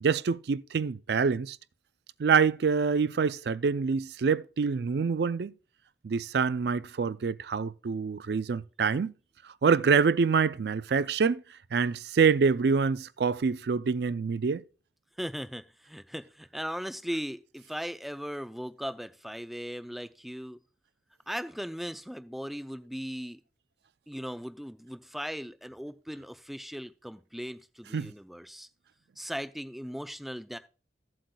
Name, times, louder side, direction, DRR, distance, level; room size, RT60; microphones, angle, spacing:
voice 1, 0.0-1.6 2.2-5.5 6.0-9.1 9.6-11.4 11.7-14.6 27.9-28.1, right 5 dB, 65° right, 0.4 m, -26 dB
voice 2, 15.2-20.6 21.3-23.4 24.1-28.7 29.2-30.6, equal, ahead, 0.4 m, -38 dB
15.5 x 7.6 x 2.3 m
head